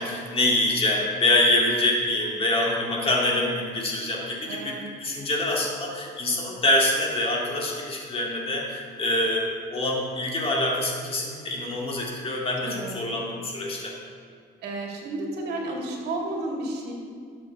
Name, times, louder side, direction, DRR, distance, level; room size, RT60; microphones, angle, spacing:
voice 1, 0.0-4.7 5.0-13.9, left 1 dB, 35° left, -2 dB, 2.3 m, -25 dB
voice 2, 4.5-4.8 12.6-12.9 14.6-16.9, right 2 dB, 75° right, 0 dB, 2.2 m, -32 dB
12.5 x 7.5 x 3.6 m, 2.1 s
cardioid pair, 110°, 17 cm